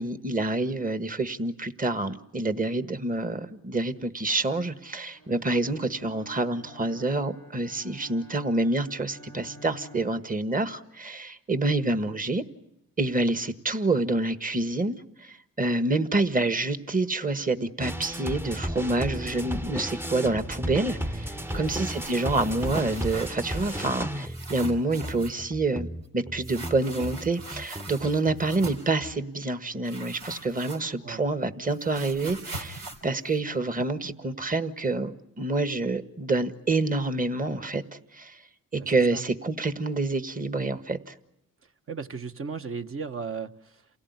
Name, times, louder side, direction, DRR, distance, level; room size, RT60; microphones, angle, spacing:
voice 1, 0.0-12.4 13.0-25.9 26.1-38.4 38.7-41.2, right 2 dB, 25° right, 10 dB, 1.6 m, -27 dB
Bowed string instrument, 5.1-10.4, equal, 75° right, 4.1 m, -50 dB
sound 1, 17.8-29.2, equal, 5° right, 0.9 m, -34 dB
voice 2, 21.4-21.8 31.0-31.2 38.8-39.2 41.6-43.9, right 5 dB, 40° right, 7 dB, 1.4 m, -37 dB
sound 2, 21.5-24.0 24.2-25.4 26.4-28.9 29.8-31.2 31.4-34.1, right 3 dB, 90° right, 3.9 m, -42 dB
28.5 x 17.0 x 9.6 m, 0.82 s
cardioid pair, 70°, 33 cm